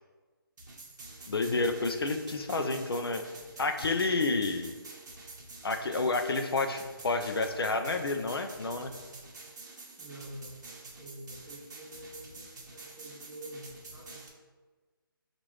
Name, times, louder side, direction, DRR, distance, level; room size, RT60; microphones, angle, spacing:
sound 1, 0.6-14.3, right 3 dB, 50° right, 0.9 m, -48 dB
voice 1, 1.3-3.2 3.6-4.7 5.6-8.9, left 3 dB, 80° left, 6 dB, 0.5 m, -30 dB
voice 2, 10.0-10.6 11.0-14.2, right 1 dB, ahead, -10 dB, 0.8 m, -47 dB
5.7 x 2.5 x 3.1 m, 1.3 s
figure-of-eight pair, 150°, 12 cm